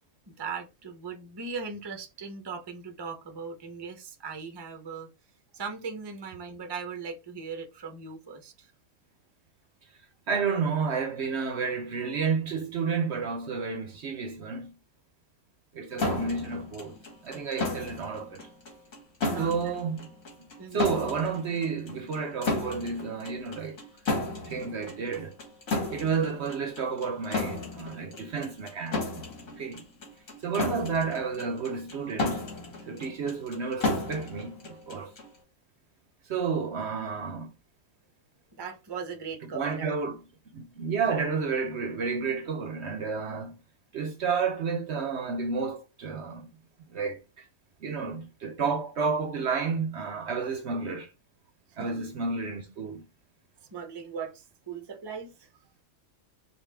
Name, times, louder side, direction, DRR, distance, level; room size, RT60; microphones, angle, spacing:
voice 1, 0.4-5.1 5.5-8.7 19.3-19.7 20.6-20.9 38.5-39.9 51.7-52.0 53.7-55.5, right 5 dB, 25° right, 0.6 m, -39 dB
voice 2, 10.3-14.7 15.7-17.0 17.2-18.4 19.4-20.0 20.7-23.8 24.5-25.4 25.9-29.2 29.6-29.8 30.4-32.5 32.9-35.1 36.3-37.5 39.5-40.2 40.5-43.6 43.9-46.5 46.9-47.2 47.8-51.1 51.8-53.1, right 5 dB, 60° right, 0.9 m, -31 dB
sound 1, 16.0-35.4, left 2 dB, 70° left, 2.0 m, -34 dB
5.3 x 2.5 x 3.3 m
omnidirectional pair, 1.5 m